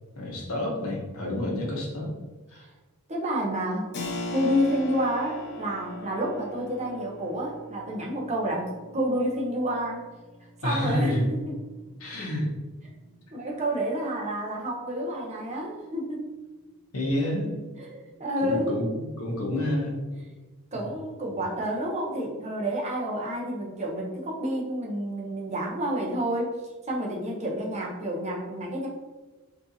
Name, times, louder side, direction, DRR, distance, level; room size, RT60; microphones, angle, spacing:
voice 1, 0.1-2.1 2.5-2.6 10.6-11.3 12.0-12.5 16.9-17.5 18.4-20.0 20.7-20.9, left 1 dB, 70° left, -2 dB, 1.0 m, -29 dB
voice 2, 3.1-3.9 4.3-10.0 10.6-11.6 13.3-16.2 17.8-18.7 20.7-26.6 26.9-28.9, equal, 30° right, -2 dB, 0.7 m, -29 dB
Keyboard (musical), 3.9-14.3, left 1 dB, 50° left, 0.6 m, -41 dB
4.6 x 2.7 x 2.7 m, 1.2 s
head